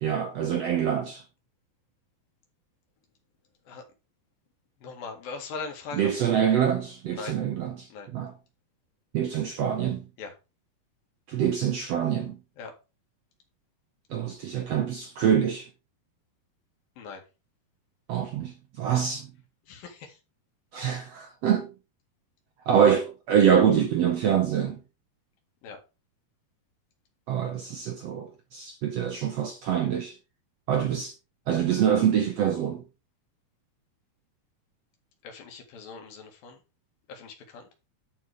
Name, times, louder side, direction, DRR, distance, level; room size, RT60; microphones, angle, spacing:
voice 1, 0.0-1.2 5.9-8.3 9.1-10.0 11.3-12.4 14.1-15.7 18.1-19.3 20.7-21.7 22.7-24.8 27.3-30.2 30.7-31.1 31.5-32.8, right 8 dB, 75° right, 1.5 m, -25 dB
voice 2, 4.8-6.4 7.1-7.4 7.9-8.1 10.2-10.3 12.6-12.7 17.0-17.2 19.7-20.2 25.6-25.8 35.2-36.6 37.1-37.7, left 4 dB, 75° left, 3.7 m, -40 dB
11.0 x 4.7 x 4.9 m
omnidirectional pair, 4.2 m